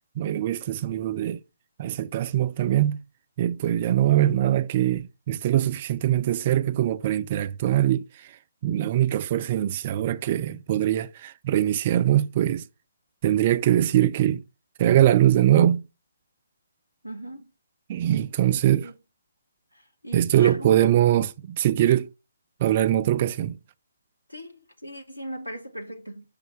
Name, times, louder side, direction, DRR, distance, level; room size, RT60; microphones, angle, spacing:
voice 1, 0.2-1.4 1.8-3.0 3.4-8.3 8.6-12.6 13.2-14.4 14.8-15.8 17.9-18.9 20.1-22.1 22.6-23.6, right 12 dB, 35° right, 0.5 m, -22 dB
voice 2, 17.0-17.5 18.4-18.9 19.7-20.7 24.3-26.2, right 1 dB, 85° right, 1.2 m, -38 dB
6.7 x 6.2 x 3.3 m
figure-of-eight pair, 135°, 0 cm